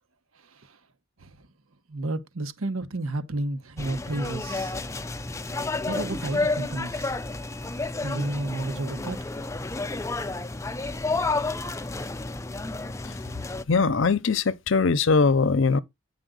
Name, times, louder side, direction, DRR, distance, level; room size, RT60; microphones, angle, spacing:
voice 1, 0.4-0.8 1.2-1.5 1.9-4.7 5.8-7.1 8.0-9.3, right 2 dB, 85° right, 1.1 m, -32 dB
sound 1, 3.8-13.6, left 3 dB, 15° left, 0.4 m, -31 dB
voice 2, 13.7-15.8, left 4 dB, 65° left, 0.6 m, -21 dB
9.1 x 5.4 x 3.8 m
head